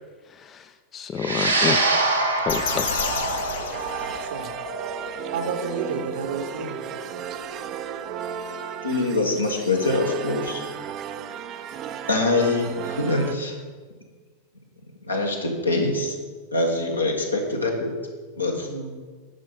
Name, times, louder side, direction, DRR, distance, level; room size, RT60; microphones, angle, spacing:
voice 1, 0.3-1.8 2.4-3.0, left 7 dB, 25° left, 10 dB, 0.4 m, -29 dB
sound 1, 1.2-9.7, right 2 dB, 85° right, 1.2 m, -27 dB
sound 2, 2.5-4.6, left 5 dB, 65° left, 1.1 m, -30 dB
sound 3, 3.7-13.3, right 9 dB, 35° right, 0.5 m, -35 dB
voice 2, 5.3-6.8 18.5-18.9, right 5 dB, 60° right, 6 dB, 1.1 m, -31 dB
voice 3, 8.8-10.6 12.1-13.5 15.0-16.1 16.5-17.9 18.4-18.7, left 2 dB, 80° left, 1 dB, 1.5 m, -24 dB
10.5 x 5.5 x 5.5 m, 1.5 s
figure-of-eight pair, 90°, 0 cm